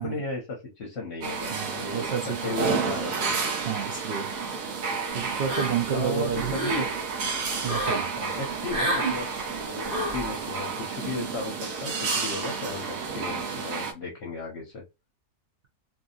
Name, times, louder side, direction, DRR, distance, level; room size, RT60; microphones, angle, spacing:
voice 1, 0.0-2.1 2.4-3.4 5.9-6.8 8.2-14.8, left 3 dB, 55° left, 0.9 m, -35 dB
sound 1, 1.2-13.9, right 5 dB, 65° right, 1.1 m, -31 dB
voice 2, 1.5-2.8 3.7-4.3 5.1-6.6 7.6-8.1, right 8 dB, 85° right, 0.5 m, -30 dB
sound 2, 5.5-6.0 6.3-6.9 7.6-8.1 8.7-9.2 9.9-10.2, right 1 dB, 40° right, 1.1 m, -29 dB
2.7 x 2.6 x 2.4 m
omnidirectional pair, 1.6 m